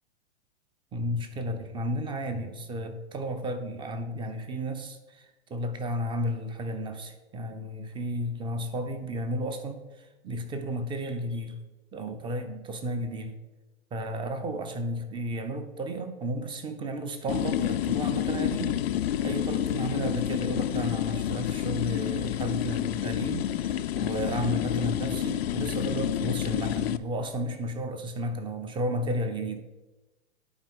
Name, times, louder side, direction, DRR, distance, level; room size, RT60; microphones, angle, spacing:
voice 1, 0.9-11.6 11.9-13.4 13.9-18.8 19.2-29.6, equal, 15° right, 8 dB, 0.7 m, -33 dB
sound 1, 17.3-27.0, left 11 dB, 60° left, 0.4 m, -29 dB
10.5 x 4.4 x 3.7 m, 1.1 s
hypercardioid pair, 110°, 34 cm